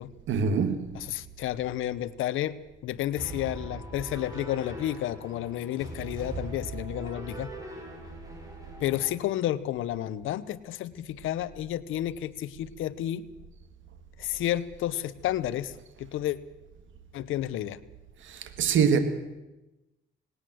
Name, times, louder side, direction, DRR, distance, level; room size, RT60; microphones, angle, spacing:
voice 1, 0.3-1.0 18.2-19.0, right 6 dB, 75° right, 2.3 m, -25 dB
voice 2, 0.9-2.6 2.8-7.5 8.8-13.2 14.2-15.7 16.0-16.4 17.1-17.8, left 13 dB, 85° left, 1.0 m, -31 dB
sound 1, 3.2-9.1, right 2 dB, 15° right, 6.6 m, -40 dB
19.5 x 18.0 x 7.8 m
cardioid pair, 90°, 20 cm